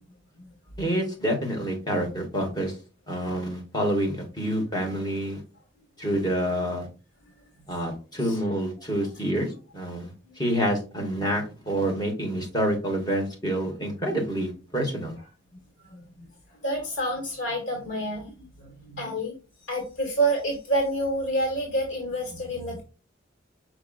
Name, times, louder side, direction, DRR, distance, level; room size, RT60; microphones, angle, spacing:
voice 1, 0.8-2.8 3.1-5.4 6.0-6.9 7.7-10.1 10.4-15.1, equal, 20° left, 0 dB, 1.7 m, -27 dB
voice 2, 15.8-16.3 16.6-19.4 19.7-22.8, right 1 dB, 85° left, 0 dB, 1.6 m, -28 dB
6.2 x 3.5 x 2.4 m, 0.33 s
head